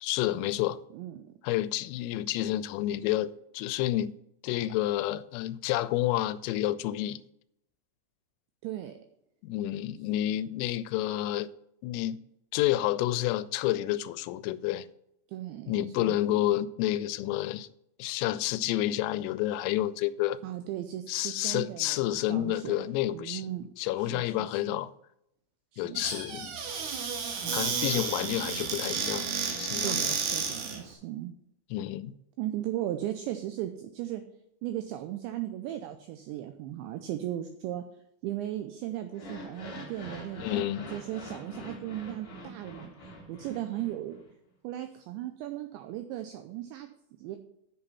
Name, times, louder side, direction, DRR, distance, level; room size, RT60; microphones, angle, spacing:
voice 1, 0.0-0.8 1.4-4.1 4.4-7.2 9.4-11.5 11.8-12.2 12.5-14.9 15.7-17.7 18.0-20.4 21.1-23.5 23.8-24.9 25.8-26.6 27.5-29.3 29.6-30.1 31.7-32.1 40.4-40.9, left 14 dB, 85° left, 3.2 m, -29 dB
voice 2, 0.9-1.4 8.6-8.9 15.3-16.4 20.4-22.0 22.3-23.7 24.0-24.8 25.7-26.0 29.7-31.3 32.4-34.2 34.6-37.8 38.2-44.2 44.6-46.9 47.2-47.4, right 13 dB, 90° right, 2.5 m, -37 dB
Squeak / Cupboard open or close, 25.9-30.8, right 6 dB, 65° right, 2.9 m, -32 dB
sound 1, 39.1-44.3, left 1 dB, 55° left, 1.0 m, -44 dB
7.9 x 7.0 x 5.6 m
omnidirectional pair, 5.9 m